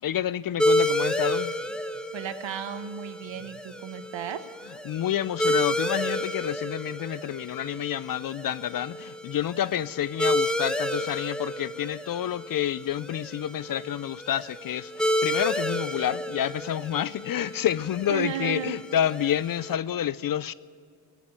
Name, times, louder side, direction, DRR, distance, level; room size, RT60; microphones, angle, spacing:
voice 1, 0.0-1.6 4.9-20.5, left 10 dB, 45° left, 0.4 m, -29 dB
sound 1, 0.6-19.7, left 1 dB, ahead, 1.1 m, -31 dB
voice 2, 2.1-4.5 18.1-18.7, right 9 dB, 65° right, 1.1 m, -34 dB
15.0 x 8.4 x 9.7 m
cardioid pair, 70°, 49 cm